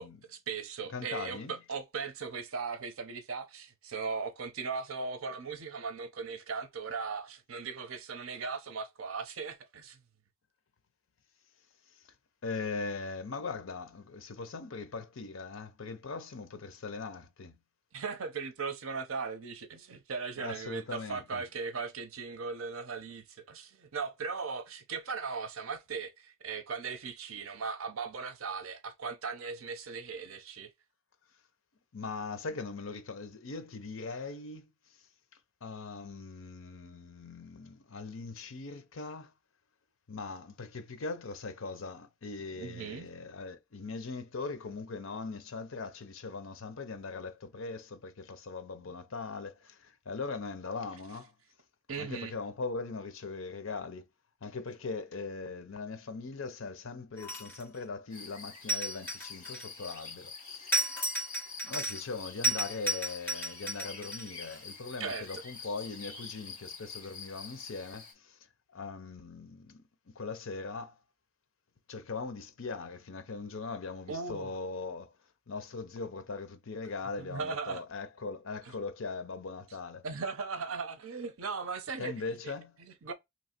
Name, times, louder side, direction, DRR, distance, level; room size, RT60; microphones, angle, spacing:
voice 1, 0.0-10.0 17.9-30.7 42.5-43.1 51.9-52.3 65.0-65.4 74.1-74.5 77.2-77.8 80.0-82.5 82.8-83.1, right 5 dB, 80° right, 0.7 m, -38 dB
voice 2, 0.9-1.6 11.9-12.0 12.4-17.6 20.4-21.4 31.9-34.7 35.6-39.3 40.1-51.3 52.0-54.1 54.4-60.9 61.6-68.4 68.7-71.0 71.9-75.1 75.5-80.0 82.0-82.8, left 4 dB, 70° left, 0.7 m, -40 dB
sound 1, 57.2-57.8 58.7-60.0 60.7-62.1 62.4-64.6, right 1 dB, 10° left, 1.2 m, -33 dB
sound 2, 58.1-68.1, left 5 dB, 40° left, 2.0 m, -46 dB
3.1 x 2.8 x 4.3 m
head